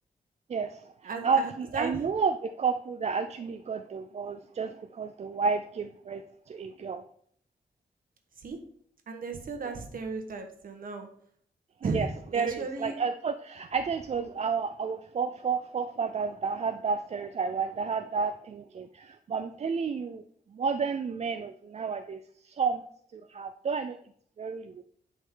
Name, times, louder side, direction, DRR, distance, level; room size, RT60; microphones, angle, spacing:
voice 1, 0.5-6.2 6.5-7.0 11.8-12.1 12.3-20.2 20.5-22.8 23.1-24.0 24.4-24.8, right 5 dB, 40° right, 8 dB, 0.4 m, -31 dB
voice 2, 1.0-2.0 8.4-8.6 9.1-11.1 11.8-12.9, right 4 dB, 60° right, 5 dB, 1.4 m, -35 dB
10.5 x 5.4 x 3.8 m, 0.62 s
wide cardioid pair, 160°, 16 cm